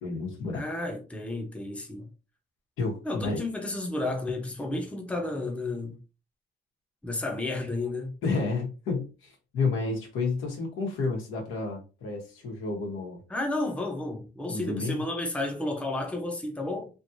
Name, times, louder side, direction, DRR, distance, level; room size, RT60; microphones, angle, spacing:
voice 1, 0.0-0.6 2.8-3.4 8.2-13.2 14.5-15.0, left 3 dB, 85° left, 1.3 m, -31 dB
voice 2, 0.5-2.1 3.0-6.0 7.0-8.1 13.3-16.9, left 2 dB, 5° left, 0.8 m, -32 dB
3.2 x 2.8 x 2.6 m
cardioid pair, 90°, 20 cm